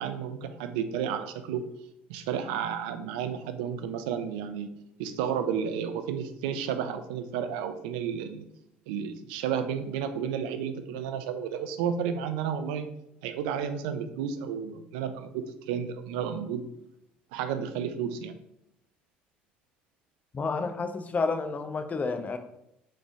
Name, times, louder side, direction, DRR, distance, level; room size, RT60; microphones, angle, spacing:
voice 1, 0.0-1.7 2.1-4.7 5.0-8.4 8.9-12.9 13.2-16.6 17.3-18.4, right 8 dB, 75° right, 9 dB, 0.4 m, -32 dB
voice 2, 20.3-22.4, left 4 dB, 30° left, 8 dB, 0.5 m, -30 dB
4.0 x 3.2 x 3.5 m, 0.82 s
hypercardioid pair, 65°, 5 cm